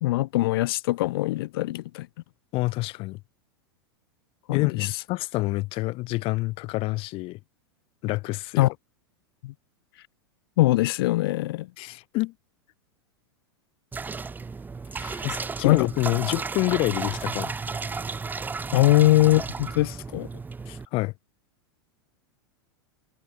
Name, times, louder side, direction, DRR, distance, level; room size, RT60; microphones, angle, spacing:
voice 1, 0.0-2.1 4.5-4.9 8.6-8.7 9.4-9.5 10.6-11.7 15.0-15.2 15.6-15.9 18.7-20.3, left 17 dB, 65° left, 1.6 m, -22 dB
voice 2, 2.5-3.2 4.5-7.4 8.0-8.7 11.8-12.3 15.2-17.5 20.7-21.1, left 21 dB, 45° left, 1.3 m, -27 dB
sound 1, 13.9-20.9, right 4 dB, 15° right, 1.6 m, -33 dB
hypercardioid pair, 110°, 13 cm